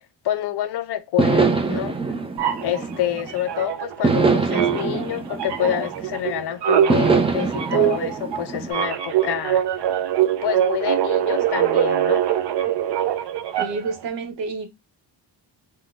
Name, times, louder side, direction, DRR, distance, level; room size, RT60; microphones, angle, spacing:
voice 1, 0.2-1.9 2.6-9.6 10.4-12.2, left 11 dB, 65° left, 0.5 m, -27 dB
sound 1, 1.2-3.4 4.0-6.3 6.9-8.7, right 4 dB, 15° right, 0.3 m, -23 dB
sound 2, 2.4-4.2 4.5-14.0, right 10 dB, 65° right, 0.6 m, -23 dB
voice 2, 13.6-14.7, right 4 dB, 90° right, 0.9 m, -29 dB
3.7 x 2.2 x 2.3 m
cardioid pair, 105°, 44 cm